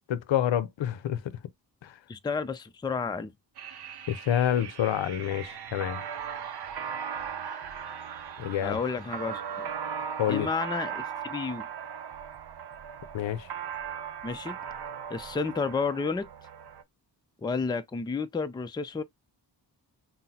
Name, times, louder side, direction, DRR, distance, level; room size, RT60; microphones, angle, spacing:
voice 1, 0.1-1.2 1.8-2.0 4.1-6.0 8.4-8.8 10.2-10.5 13.1-13.5, left 10 dB, 85° left, 0.6 m, -28 dB
voice 2, 2.1-3.3 8.6-9.7 10.3-11.7 14.2-14.6 15.1-16.3 17.4-19.0, left 4 dB, 10° left, 0.3 m, -31 dB
sound 1, 3.6-16.8, right 7 dB, 60° right, 0.6 m, -38 dB
5.7 x 2.0 x 2.7 m
wide cardioid pair, 100°, 44 cm